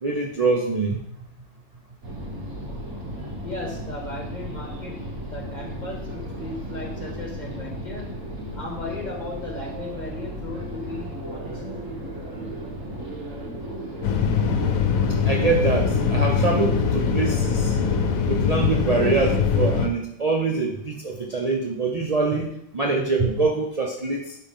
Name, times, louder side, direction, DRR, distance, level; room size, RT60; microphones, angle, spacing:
voice 1, 0.0-1.0 15.2-17.8 18.3-24.4, right 3 dB, 35° right, 0 dB, 0.7 m, -24 dB
sound 1, 2.0-18.2, equal, 70° right, 2.0 m, -35 dB
voice 2, 3.4-8.1 8.5-11.6, left 2 dB, 35° left, -2 dB, 1.7 m, -36 dB
sound 2, 14.0-19.9, left 6 dB, 80° left, 1.2 m, -22 dB
11.5 x 3.9 x 3.6 m, 0.76 s
omnidirectional pair, 1.4 m